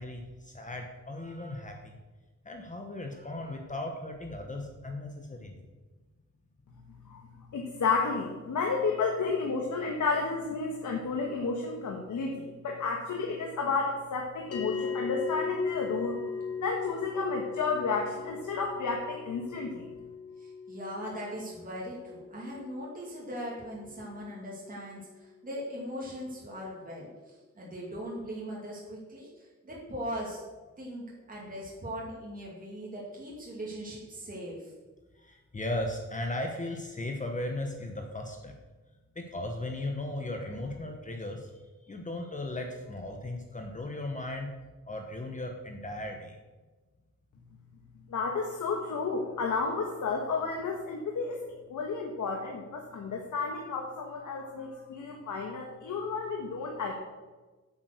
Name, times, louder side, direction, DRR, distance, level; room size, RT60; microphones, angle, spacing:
voice 1, 0.0-2.0 2.4-5.6 35.2-38.5 39.1-41.5 41.8-44.5 44.8-46.4, left 1 dB, 25° left, 3 dB, 1.0 m, -37 dB
voice 2, 7.0-16.2 16.6-19.9 48.1-56.9, left 4 dB, 80° left, 1 dB, 1.5 m, -32 dB
sound 1, 14.5-25.1, left 6 dB, 50° left, 1.8 m, -39 dB
voice 3, 20.4-30.4 30.8-34.7, equal, 30° right, -4 dB, 2.4 m, -40 dB
8.7 x 7.9 x 6.5 m, 1.2 s
wide cardioid pair, 160°, 29 cm